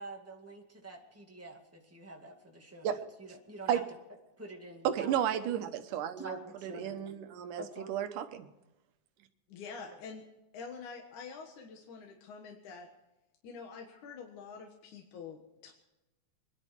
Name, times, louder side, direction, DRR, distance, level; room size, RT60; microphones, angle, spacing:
voice 1, 0.0-2.9 3.2-3.8 4.4-5.2 6.2-6.9 7.6-7.9, right 1 dB, 5° right, 1 dB, 1.5 m, -47 dB
voice 2, 4.8-8.5, right 9 dB, 80° right, 9 dB, 2.7 m, -33 dB
voice 3, 9.5-10.2 10.5-12.9 13.4-15.7, left 5 dB, 70° left, 2 dB, 2.9 m, -46 dB
24.0 x 11.0 x 4.6 m, 1.0 s
omnidirectional pair, 3.7 m